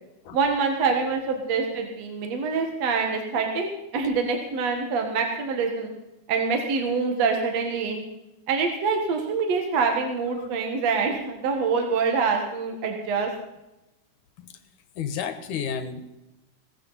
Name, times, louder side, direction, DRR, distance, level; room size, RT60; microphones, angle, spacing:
voice 1, 0.3-3.7 3.9-5.9 6.3-8.0 8.5-13.3, right 5 dB, 60° right, 3 dB, 2.6 m, -25 dB
voice 2, 15.0-16.2, left 7 dB, 75° left, 9 dB, 2.7 m, -31 dB
18.0 x 14.5 x 4.1 m, 0.93 s
omnidirectional pair, 3.6 m